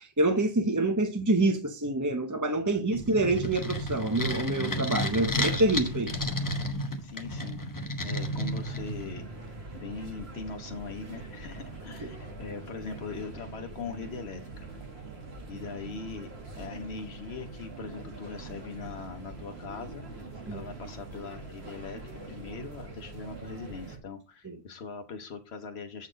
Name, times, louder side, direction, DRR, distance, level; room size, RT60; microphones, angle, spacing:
voice 1, 0.0-6.1 12.0-12.1 20.5-20.6 24.4-24.6, right 2 dB, 20° right, 0.6 m, -27 dB
voice 2, 2.6-3.2 7.0-7.6 8.0-9.3 9.7-14.7 15.5-16.3 16.6-20.0 20.5-22.0 22.3-26.1, left 4 dB, 80° left, 1.2 m, -41 dB
sound 1, 2.9-9.2, equal, 20° left, 0.9 m, -32 dB
sound 2, 8.1-24.0, right 3 dB, 75° right, 2.1 m, -43 dB
8.4 x 4.2 x 5.0 m
omnidirectional pair, 1.1 m